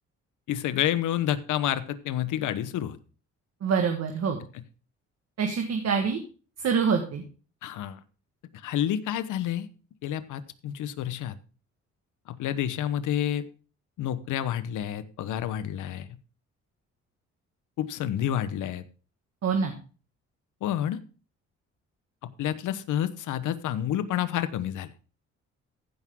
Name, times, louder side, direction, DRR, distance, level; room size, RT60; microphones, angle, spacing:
voice 1, 0.5-3.0 7.6-8.0 8.6-9.7 10.0-11.4 12.3-13.4 14.0-16.1 17.8-18.8 20.6-21.0 22.4-24.9, left 11 dB, 80° left, 12 dB, 1.0 m, -29 dB
voice 2, 3.6-4.4 5.4-6.2 6.6-7.2 19.4-19.7, right 6 dB, 55° right, 4 dB, 1.6 m, -25 dB
15.5 x 6.2 x 3.7 m, 0.37 s
cardioid pair, 90°, 30 cm